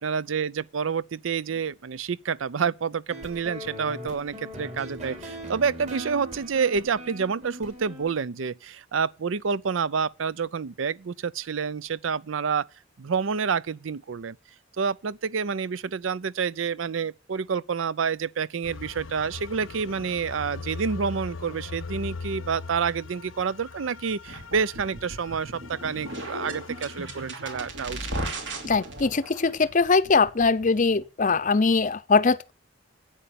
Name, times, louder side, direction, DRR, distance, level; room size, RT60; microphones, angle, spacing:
voice 1, 0.0-12.7 13.0-14.4 14.8-28.0, right 6 dB, 85° right, 0.5 m, -28 dB
sound 1, 3.1-8.1, equal, 35° right, 4.5 m, -40 dB
sound 2, 18.6-27.3, left 4 dB, 85° left, 0.7 m, -40 dB
sound 3, 24.3-31.0, right 1 dB, 65° right, 2.9 m, -37 dB
voice 2, 28.6-32.5, left 4 dB, 40° left, 0.6 m, -22 dB
11.0 x 9.0 x 6.9 m
head